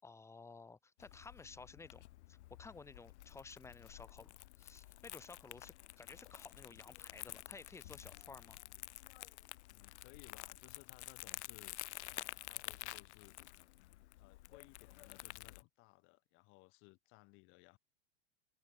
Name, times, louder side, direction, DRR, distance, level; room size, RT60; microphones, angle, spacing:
voice 1, 0.0-8.6, left 4 dB, 10° left, 7.6 m, -55 dB
Crumpling crinkling, 1.0-15.6, left 17 dB, 80° left, 1.5 m, -51 dB
voice 2, 9.7-13.4 14.2-17.8, left 27 dB, 35° left, 5.6 m, -62 dB
supercardioid pair, 180°, 34 cm